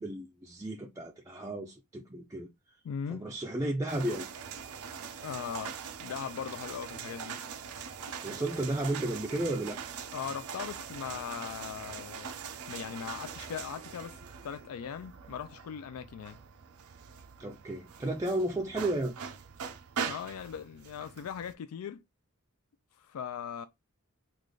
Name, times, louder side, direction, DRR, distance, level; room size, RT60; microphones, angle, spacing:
voice 1, 0.0-2.5 3.1-4.3 8.2-9.8 17.4-19.1, right 1 dB, 15° right, 0.4 m, -33 dB
voice 2, 2.8-3.3 5.2-7.4 10.1-12.3 12.7-16.4 20.0-22.0 22.9-23.7, left 7 dB, 90° left, 0.3 m, -39 dB
sound 1, 3.9-21.5, right 6 dB, 85° right, 0.5 m, -42 dB
3.2 x 2.4 x 3.7 m
head